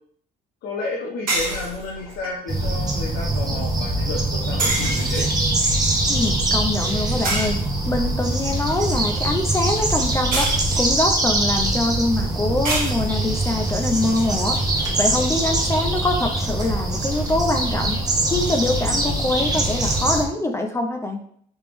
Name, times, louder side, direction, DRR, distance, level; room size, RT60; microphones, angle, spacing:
voice 1, 0.6-5.3, left 3 dB, 70° left, -3 dB, 0.8 m, -31 dB
sound 1, 1.3-2.3 4.6-5.6 7.2-8.1 10.3-11.2 12.6-13.4, right 1 dB, 55° right, 1.4 m, -27 dB
sound 2, 2.5-20.3, right 2 dB, 20° right, 0.8 m, -23 dB
voice 2, 6.1-7.6 7.9-14.6 15.0-18.0 18.3-21.2, left 2 dB, 15° left, 4 dB, 0.4 m, -24 dB
3.5 x 3.0 x 3.4 m, 0.64 s
cardioid pair, 110°, 17 cm